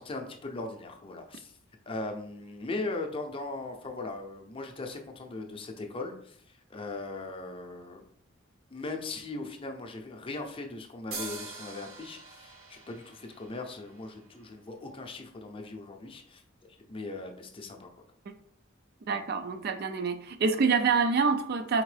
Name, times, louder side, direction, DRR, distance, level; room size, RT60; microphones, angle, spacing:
voice 1, 0.0-1.5 1.9-6.4 6.7-8.0 8.7-16.4 16.9-17.9, left 2 dB, 25° left, 3 dB, 0.6 m, -39 dB
sound 1, 11.1-14.7, right 3 dB, 90° right, 1.1 m, -44 dB
voice 2, 19.1-21.8, right 5 dB, 50° right, 9 dB, 0.4 m, -26 dB
4.4 x 3.6 x 3.3 m, 0.63 s
head